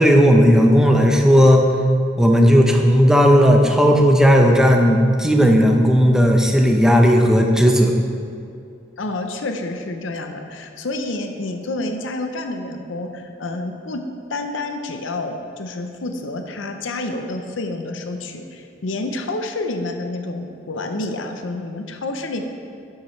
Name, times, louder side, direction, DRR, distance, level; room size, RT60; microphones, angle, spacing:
voice 1, 0.0-1.7 2.2-7.9, equal, 5° right, 2 dB, 0.7 m, -14 dB
voice 2, 9.0-14.0 14.3-22.4, left 2 dB, 90° left, 5 dB, 0.7 m, -28 dB
11.5 x 7.3 x 3.2 m, 2.4 s
head